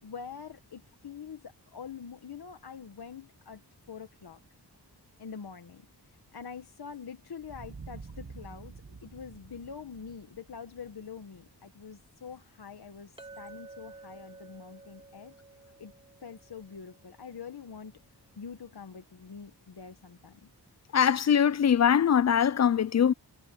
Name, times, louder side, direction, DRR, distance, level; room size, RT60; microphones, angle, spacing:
voice 1, 0.0-3.6 3.9-4.4 5.2-15.4 15.8-15.9 16.2-17.9 18.4-20.5, left 6 dB, 65° left, 1.5 m, -45 dB
sound 1, 7.4-12.0, right 4 dB, 40° right, 2.0 m, -48 dB
Chink clink, 13.2-17.6, right 3 dB, 15° right, 2.1 m, -52 dB
voice 2, 20.9-23.1, left 8 dB, 40° left, 0.5 m, -22 dB
wide cardioid pair, 95°, 41 cm